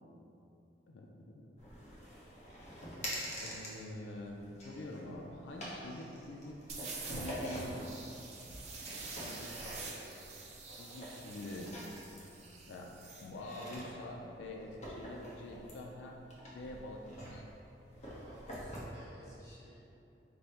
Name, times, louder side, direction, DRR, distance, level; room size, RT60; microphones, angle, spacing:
voice 1, 0.9-1.4 3.4-8.1 9.2-9.4 10.8-11.7 12.2-12.3 12.7-12.9 13.2-16.2 16.5-17.4, left 1 dB, 85° left, 0 dB, 0.4 m, -46 dB
sound 1, 1.6-18.8, equal, 40° left, 0.8 m, -46 dB
sound 2, 6.7-13.3, right 4 dB, 35° right, 0.5 m, -47 dB
voice 2, 8.9-10.5 18.2-19.8, equal, 15° left, -9 dB, 1.0 m, -57 dB
5.1 x 2.1 x 4.2 m, 2.9 s
head